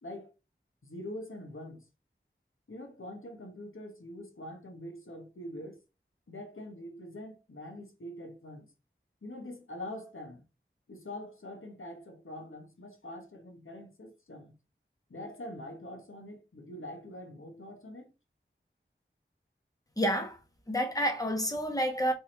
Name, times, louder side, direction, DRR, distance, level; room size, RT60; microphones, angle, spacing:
voice 1, 0.0-0.3 0.8-1.8 2.7-5.8 6.3-8.7 9.2-10.4 10.9-14.5 15.1-18.1, left 1 dB, 85° left, 1.1 m, -44 dB
voice 2, 20.0-20.4 20.7-22.1, equal, 15° left, 1.2 m, -29 dB
4.2 x 3.5 x 3.2 m
wide cardioid pair, 40°, 20 cm